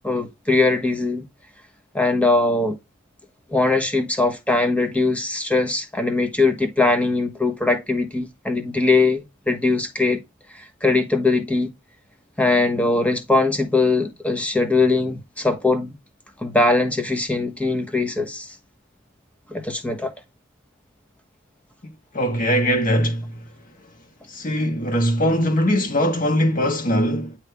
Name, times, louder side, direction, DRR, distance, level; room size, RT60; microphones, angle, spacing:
voice 1, 0.0-1.2 1.9-2.8 3.5-10.2 10.5-11.7 12.4-15.9 16.4-18.5 19.5-20.1, left 3 dB, 5° left, 1.2 m, -21 dB
voice 2, 22.1-23.2 24.3-27.4, equal, 45° left, 1.6 m, -21 dB
9.6 x 3.2 x 3.4 m
head